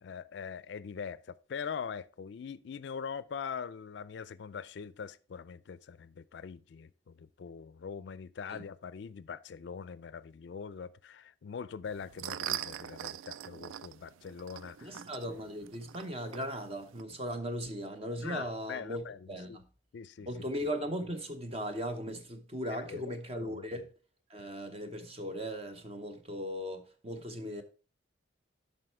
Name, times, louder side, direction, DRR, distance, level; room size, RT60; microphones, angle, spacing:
voice 1, 0.0-15.0 18.2-19.6 19.9-20.5 22.7-23.7, left 6 dB, 60° left, 0.4 m, -43 dB
sound 1, 11.8-17.0, right 11 dB, 90° right, 0.3 m, -42 dB
voice 2, 14.8-19.0 19.3-19.6 20.3-23.9 24.3-27.6, equal, 30° right, 0.9 m, -38 dB
7.7 x 5.4 x 4.4 m
head